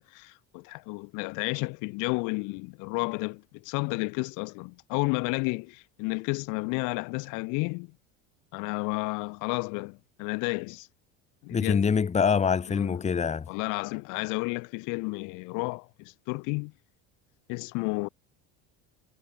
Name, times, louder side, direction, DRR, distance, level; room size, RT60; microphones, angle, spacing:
voice 1, 0.0-7.9 8.5-10.9 11.4-11.8 12.7-13.0 13.5-16.7 17.5-18.1, left 30 dB, 75° left, 2.7 m, -32 dB
voice 2, 11.5-13.5, left 6 dB, 20° left, 1.9 m, -25 dB
cardioid pair, 130°, 31 cm